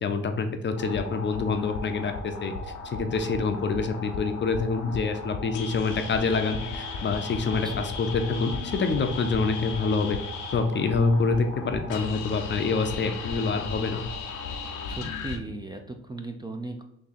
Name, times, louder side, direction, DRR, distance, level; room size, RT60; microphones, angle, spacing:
voice 1, 0.0-2.5 2.9-10.2 10.5-14.0, left 4 dB, 40° left, 7 dB, 0.5 m, -26 dB
sound 1, 0.8-15.4, left 4 dB, 85° left, 0.7 m, -36 dB
voice 2, 14.9-16.8, right 2 dB, 15° right, 4 dB, 0.4 m, -37 dB
3.7 x 2.7 x 4.1 m, 0.76 s
cardioid pair, 90°, 30 cm